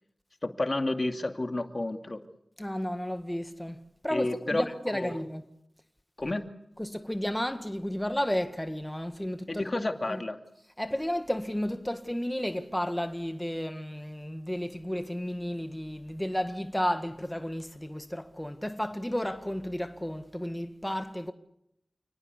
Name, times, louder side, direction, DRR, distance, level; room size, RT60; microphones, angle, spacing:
voice 1, 0.4-2.2 4.1-4.6 4.9-5.1 6.2-6.5 9.5-10.4, left 2 dB, 45° left, 2.4 m, -31 dB
voice 2, 2.6-5.4 6.3-6.4 6.8-9.6 10.1-10.2 10.8-21.3, equal, 10° left, 1.9 m, -32 dB
29.5 x 19.0 x 8.3 m
cardioid pair, 45°, 0 cm